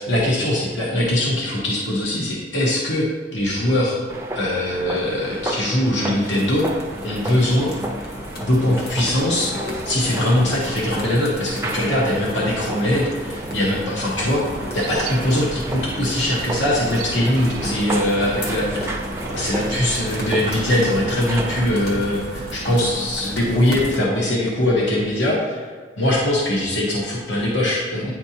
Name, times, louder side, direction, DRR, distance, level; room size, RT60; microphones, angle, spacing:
voice 1, 0.0-4.0 4.3-6.7 7.0-7.7 8.4-9.5 9.8-14.4 14.7-19.0 19.3-25.7 26.0-28.1, left 1 dB, 75° left, -4 dB, 1.2 m, -21 dB
sound 1, 4.1-21.6, right 1 dB, 15° right, 0.4 m, -32 dB
sound 2, 6.1-24.0, equal, 55° left, 1.2 m, -34 dB
sound 3, 14.1-23.0, right 2 dB, 65° right, 0.5 m, -35 dB
9.3 x 4.4 x 2.8 m, 1.5 s
head